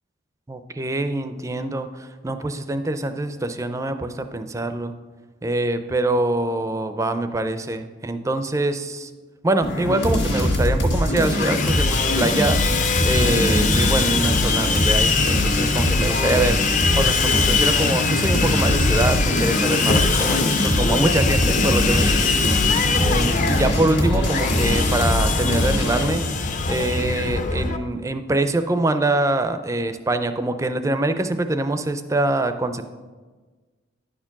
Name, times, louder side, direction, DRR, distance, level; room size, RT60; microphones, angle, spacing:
voice 1, 0.5-4.9 5.4-9.1 9.4-12.6 13.1-16.6 17.0-22.3 23.0-26.2 26.7-32.9, right 2 dB, 15° right, 9 dB, 0.4 m, -24 dB
sound 1, 9.6-26.1, left 1 dB, 60° left, 1.7 m, -22 dB
Sawing, 11.3-27.8, left 5 dB, 40° left, 0.5 m, -23 dB
sound 2, 17.3-27.1, left 2 dB, 75° left, 0.8 m, -36 dB
10.5 x 4.4 x 5.8 m, 1.4 s
head